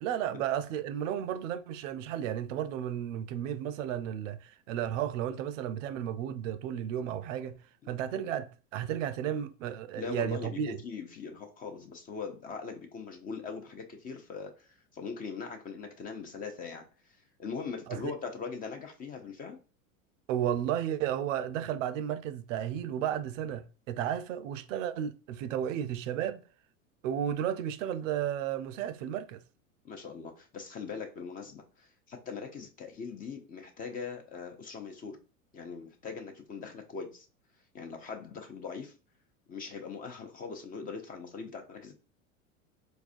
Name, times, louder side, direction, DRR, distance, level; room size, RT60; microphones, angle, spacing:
voice 1, 0.0-7.6 7.9-10.8 17.9-18.1 20.3-26.4 27.0-29.4, right 10 dB, 65° right, 0.5 m, -33 dB
voice 2, 10.0-16.9 17.4-19.6 29.8-35.2 35.5-37.3 37.7-38.9 39.5-42.0, left 5 dB, 20° left, 0.4 m, -41 dB
4.1 x 2.4 x 2.5 m
hypercardioid pair, 100°, 41 cm